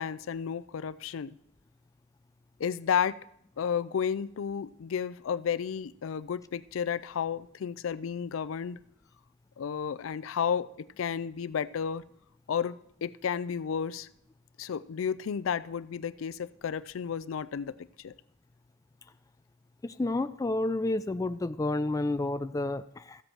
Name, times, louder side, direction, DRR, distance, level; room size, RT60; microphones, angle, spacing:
voice 1, 0.0-1.4 2.6-3.2 3.6-8.8 9.6-12.0 12.5-12.8 13.0-14.1 14.6-18.1, left 7 dB, 85° left, 16 dB, 0.4 m, -32 dB
voice 2, 19.8-23.2, left 2 dB, 15° left, 11 dB, 0.3 m, -30 dB
14.5 x 7.8 x 4.6 m, 0.70 s
head